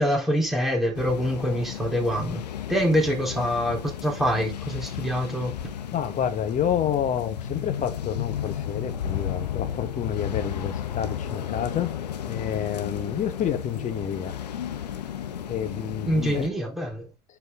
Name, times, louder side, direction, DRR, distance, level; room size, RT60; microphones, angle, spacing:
voice 1, 0.0-5.5 16.1-17.1, equal, ahead, 3.9 m, -25 dB
sound 1, 0.9-16.5, left 10 dB, 80° left, 1.1 m, -33 dB
voice 2, 5.9-11.9 12.2-14.3 15.5-16.5, left 9 dB, 40° left, 1.6 m, -29 dB
9.4 x 4.8 x 3.9 m
figure-of-eight pair, 75°, 21 cm